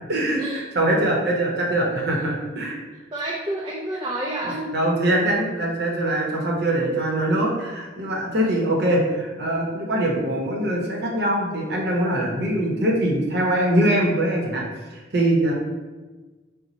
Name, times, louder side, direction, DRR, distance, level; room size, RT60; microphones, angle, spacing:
voice 1, 0.1-2.8 4.4-14.6 14.9-15.5, right 1 dB, 60° right, -1 dB, 0.8 m, -23 dB
voice 2, 2.9-4.8 8.4-8.6, right 1 dB, 25° right, -3 dB, 0.4 m, -30 dB
4.1 x 2.1 x 4.0 m, 1.3 s
head